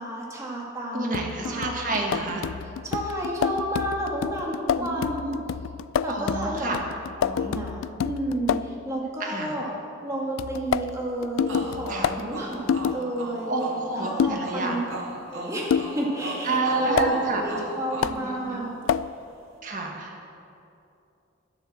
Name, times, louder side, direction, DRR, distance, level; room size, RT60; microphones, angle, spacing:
voice 1, 0.0-2.3 2.8-5.4 6.0-6.7 7.2-9.7 10.0-13.5 14.0-14.9 15.2-18.8, right 1 dB, 15° right, -3 dB, 2.0 m, -31 dB
voice 2, 0.9-2.5 4.8-5.4 6.1-6.8 9.2-9.5 11.9-12.2 13.5-14.9 16.4-17.4 18.0-18.7 19.6-20.3, right 3 dB, 40° right, 0 dB, 1.6 m, -29 dB
sound 1, 1.1-8.8 10.4-13.0 14.2-14.5 15.7-16.0 17.0-17.1 18.0-18.2 18.9-19.1, left 7 dB, 90° left, 0.3 m, -28 dB
sound 2, 11.5-19.0, right 1 dB, 80° right, 2.2 m, -38 dB
10.5 x 9.7 x 7.2 m, 2.7 s
head